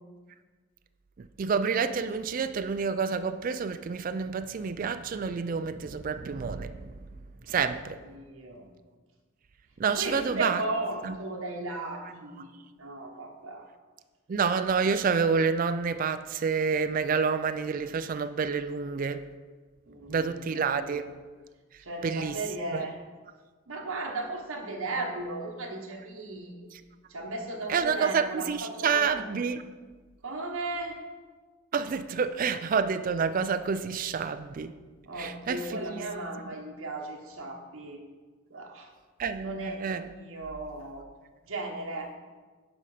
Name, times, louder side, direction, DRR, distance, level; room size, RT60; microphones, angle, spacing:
voice 1, 1.2-7.0 7.5-8.0 9.8-10.6 11.0-11.2 14.3-19.2 20.1-21.1 22.0-22.4 22.7-22.9 26.7-26.8 27.7-29.6 31.7-34.7 35.2-36.0 39.2-40.0, right 5 dB, 40° right, 0.3 m, -28 dB
voice 2, 8.1-8.7 9.8-12.5 12.8-13.6 19.9-20.9 21.8-23.0 23.7-26.7 27.1-29.4 30.2-31.0 35.1-38.0 38.5-38.9 39.4-41.0 41.4-42.1, right 2 dB, 75° right, 1.2 m, -36 dB
9.9 x 5.2 x 4.9 m
head